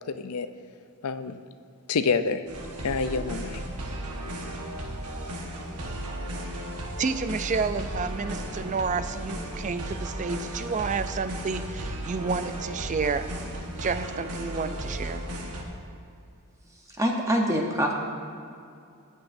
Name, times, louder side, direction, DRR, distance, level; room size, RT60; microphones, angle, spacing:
voice 1, 0.1-0.5 1.0-1.4 1.9-2.4 2.8-3.6, left 5 dB, 75° left, 11 dB, 0.5 m, -27 dB
sound 1, 2.5-15.6, right 1 dB, 90° right, 1.4 m, -35 dB
voice 2, 7.0-13.3 13.8-15.2, right 4 dB, 35° right, 11 dB, 0.4 m, -30 dB
voice 3, 17.0-17.9, equal, 15° right, 0 dB, 0.9 m, -24 dB
19.0 x 7.9 x 2.6 m, 2.5 s
head